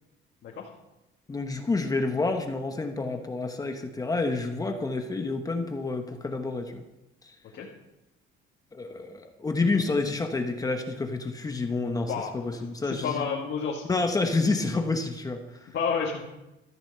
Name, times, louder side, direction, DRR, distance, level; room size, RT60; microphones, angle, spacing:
voice 1, 1.3-6.8 7.2-7.3 8.7-13.3 13.9-15.7, left 3 dB, 15° left, 4 dB, 1.1 m, -29 dB
voice 2, 12.0-13.8 15.7-16.2, left 6 dB, 55° left, -2 dB, 2.1 m, -31 dB
14.0 x 8.8 x 6.8 m, 0.95 s
cardioid pair, 155°, 21 cm